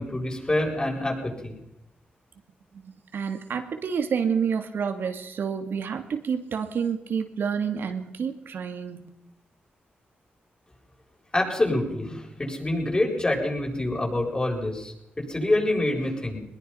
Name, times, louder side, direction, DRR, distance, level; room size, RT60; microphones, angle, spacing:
voice 1, 0.0-1.6 11.3-16.4, left 1 dB, 25° left, 0 dB, 7.9 m, -26 dB
voice 2, 2.7-9.1, right 6 dB, 75° right, 7 dB, 2.6 m, -29 dB
22.0 x 21.0 x 5.9 m, 0.82 s
cardioid pair, 80°, 4 cm